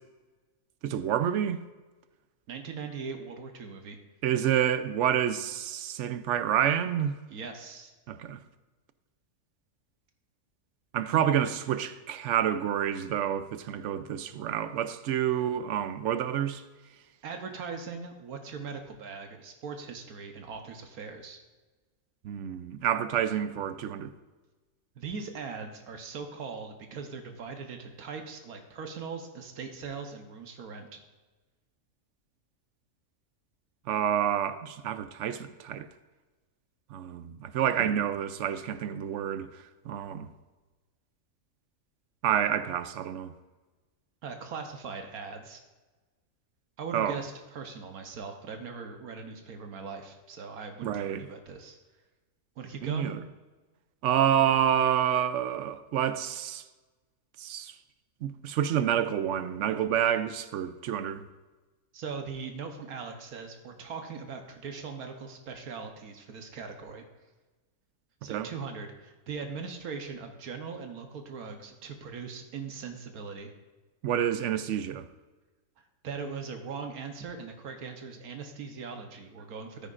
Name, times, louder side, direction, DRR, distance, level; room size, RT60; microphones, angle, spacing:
voice 1, 0.8-1.6 4.2-7.1 8.1-8.4 10.9-16.6 22.2-24.1 33.9-35.9 36.9-39.5 39.9-40.3 42.2-43.3 46.9-47.2 50.8-51.3 52.8-53.2 54.0-56.6 57.4-57.7 58.2-61.2 68.3-68.5 74.0-75.1, right 9 dB, 65° right, 0.8 m, -28 dB
voice 2, 2.5-4.0 7.3-7.9 17.2-21.4 25.0-31.0 37.8-38.0 44.2-45.6 46.8-51.8 52.6-53.1 61.9-67.0 68.2-73.5 76.0-79.9, right 5 dB, 85° right, 1.5 m, -40 dB
14.0 x 9.2 x 2.5 m
omnidirectional pair, 1.5 m